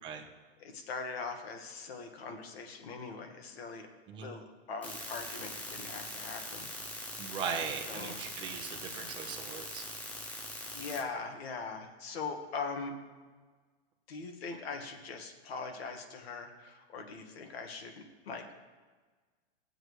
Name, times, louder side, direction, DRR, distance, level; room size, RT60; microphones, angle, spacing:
voice 1, 0.6-3.9 4.2-6.7 7.9-8.2 10.3-10.4 10.7-12.9 14.1-18.5, left 4 dB, 70° left, 4 dB, 1.7 m, -41 dB
sound 1, 4.8-11.0, left 1 dB, 5° left, 0.4 m, -42 dB
voice 2, 7.2-9.8, right 6 dB, 15° right, 1 dB, 0.8 m, -39 dB
18.5 x 7.9 x 3.2 m, 1.4 s
supercardioid pair, 165°, 31 cm